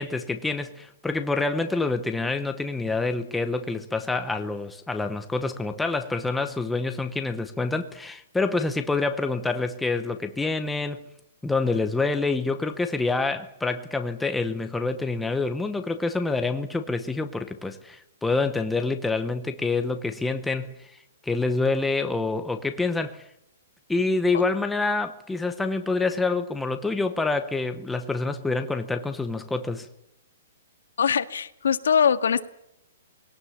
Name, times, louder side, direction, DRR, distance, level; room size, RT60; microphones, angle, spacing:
voice 1, 0.0-11.1 11.4-20.8 21.2-23.2 23.9-29.9, left 3 dB, 5° left, 0.8 m, -27 dB
voice 2, 31.0-32.4, left 7 dB, 85° left, 1.7 m, -22 dB
21.5 x 18.0 x 7.2 m
hypercardioid pair, 180°, 0 cm